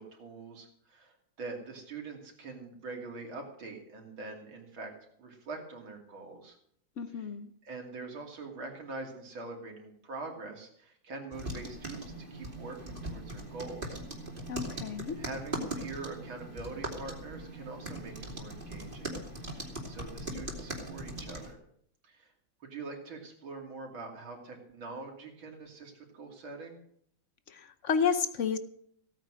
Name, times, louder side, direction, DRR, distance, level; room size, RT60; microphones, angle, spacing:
voice 1, 0.0-4.9 5.2-6.6 7.1-7.3 7.6-14.0 14.7-21.6 22.0-22.3 22.6-26.8, right 3 dB, 85° right, 1 dB, 3.6 m, -44 dB
voice 2, 7.0-7.5 14.5-15.2 27.5-28.6, left 6 dB, 55° left, 11 dB, 0.8 m, -31 dB
sound 1, 11.3-21.5, right 1 dB, 25° right, 2.9 m, -40 dB
16.5 x 9.2 x 6.3 m, 0.67 s
omnidirectional pair, 2.1 m